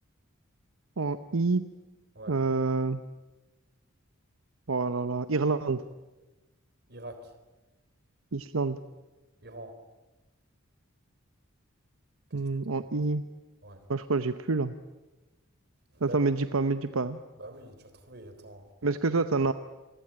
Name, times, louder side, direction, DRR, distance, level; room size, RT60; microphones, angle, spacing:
voice 1, 1.0-1.7 2.3-3.0 4.7-5.8 8.3-8.8 12.3-13.2 13.9-14.7 16.0-17.2 18.8-19.5, right 3 dB, 80° right, 11 dB, 0.9 m, -27 dB
voice 2, 6.9-7.3 9.4-9.8 12.6-12.8 13.6-13.8 15.9-16.2 17.4-18.7, right 1 dB, 50° right, 9 dB, 3.8 m, -44 dB
28.0 x 22.5 x 8.8 m, 1.1 s
head